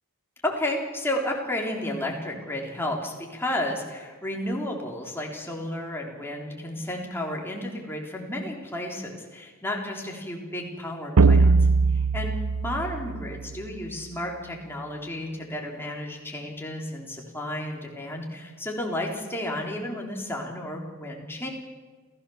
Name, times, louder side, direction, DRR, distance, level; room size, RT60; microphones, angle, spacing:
voice 1, 0.4-21.5, left 1 dB, 10° left, 0 dB, 3.8 m, -32 dB
sound 1, 11.2-13.8, right 4 dB, 85° right, 0.6 m, -21 dB
28.0 x 16.5 x 7.2 m, 1.4 s
head